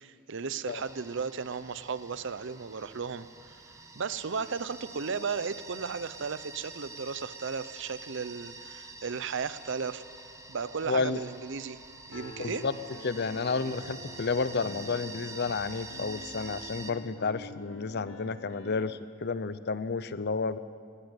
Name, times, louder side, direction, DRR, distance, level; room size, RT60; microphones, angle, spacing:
voice 1, 0.0-3.3 4.0-10.0 10.5-11.8 12.1-12.6, right 5 dB, 60° right, 15 dB, 0.6 m, -35 dB
sound 1, 0.7-16.9, right 3 dB, 15° right, 1.2 m, -47 dB
voice 2, 10.9-11.2 12.4-12.7 13.0-20.6, left 4 dB, 55° left, 15 dB, 0.7 m, -31 dB
Piano, 12.1-19.0, left 1 dB, 80° left, 1.6 m, -47 dB
20.0 x 14.5 x 9.1 m, 2.2 s
head